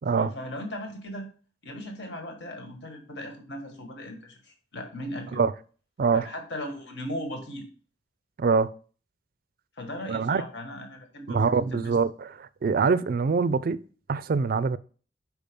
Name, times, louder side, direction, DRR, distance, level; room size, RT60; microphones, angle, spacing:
voice 1, 0.1-1.3 1.6-5.4 6.1-7.7 9.8-12.0, left 1 dB, 70° left, 1.5 m, -38 dB
voice 2, 6.0-6.3 8.4-8.7 10.1-10.4 11.3-13.8 14.1-14.8, right 5 dB, 50° right, 0.4 m, -24 dB
5.3 x 4.9 x 5.1 m
head